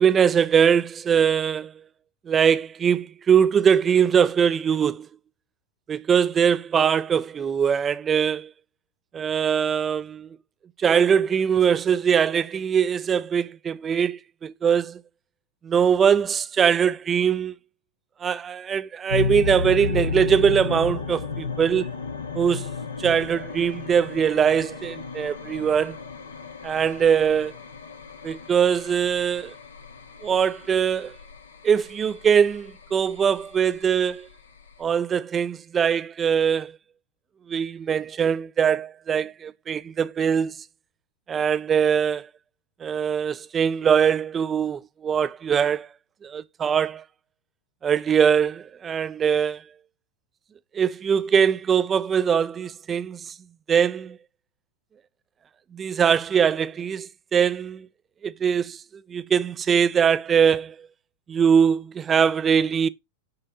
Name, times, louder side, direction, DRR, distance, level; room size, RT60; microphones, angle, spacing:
voice 1, 0.0-1.7 2.3-5.1 5.9-8.5 9.1-10.3 10.8-15.0 15.6-17.5 18.2-21.9 22.4-22.7 23.0-26.0 26.6-27.5 28.2-29.5 30.2-31.2 31.6-34.3 34.8-36.8 37.5-40.5 41.3-42.3 42.8-45.9 46.2-47.0 47.8-49.6 50.7-53.3 53.7-54.2 55.7-57.9 58.2-58.8 59.1-60.9 61.3-62.9, right 7 dB, 20° right, 0.5 m, -22 dB
sound 1, 19.1-34.8, left 5 dB, 70° left, 1.0 m, -33 dB
9.5 x 3.3 x 4.0 m
figure-of-eight pair, 90°, 0 cm